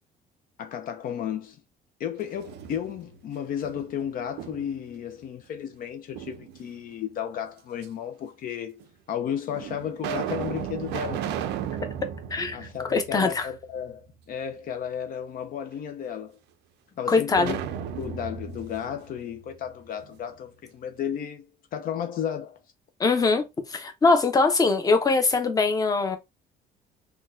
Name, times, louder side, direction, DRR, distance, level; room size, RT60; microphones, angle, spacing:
voice 1, 0.6-1.6 2.0-8.8 9.1-11.3 12.5-16.4 17.0-17.6 18.0-22.6, left 9 dB, 55° left, 0.5 m, -33 dB
sound 1, 2.2-3.2 3.6-4.9 6.1-6.9 7.8-7.9 8.8-8.9 9.5-13.6 13.9-14.0 17.3-20.1, right 9 dB, 85° right, 0.5 m, -35 dB
voice 2, 12.9-13.5 17.1-17.5 23.0-23.4 23.7-26.2, left 3 dB, 20° left, 0.7 m, -22 dB
3.7 x 2.3 x 2.5 m
cardioid pair, 110°, 17 cm